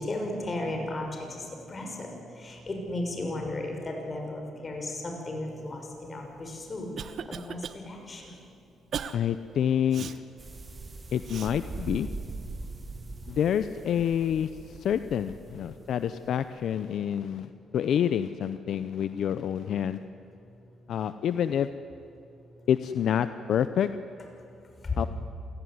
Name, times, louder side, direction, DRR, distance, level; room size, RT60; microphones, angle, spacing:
voice 1, 0.0-2.1 2.4-6.9 7.3-8.3 24.8-25.1, left 2 dB, 30° left, 2 dB, 6.3 m, -34 dB
Cough, 6.4-7.8 8.2-8.4 8.9-9.2 9.9-10.2 11.3-11.5, right 7 dB, 60° right, 1.1 m, -37 dB
voice 2, 9.1-10.2 11.1-12.1 13.3-20.0 20.9-21.7 22.7-23.9 25.0-25.1, left 9 dB, 70° left, 12 dB, 0.7 m, -28 dB
sound 1, 10.4-16.3, right 3 dB, 30° right, 2.6 m, -41 dB
27.5 x 17.5 x 9.6 m, 2.7 s
cardioid pair, 90°, 0 cm